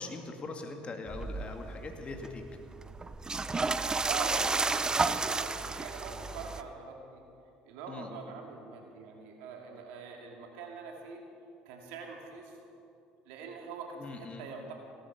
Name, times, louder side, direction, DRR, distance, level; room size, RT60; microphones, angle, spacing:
voice 1, 0.0-2.4 7.9-8.2 14.0-14.5, left 3 dB, 35° left, 4 dB, 2.0 m, -41 dB
sound 1, 1.1-6.6, right 3 dB, 20° right, 0.7 m, -32 dB
voice 2, 4.0-7.2 7.6-11.2 11.6-12.6 13.3-14.7, right 5 dB, 80° right, 2 dB, 2.5 m, -43 dB
17.0 x 13.0 x 5.8 m, 2.5 s
supercardioid pair, 80°, 3 cm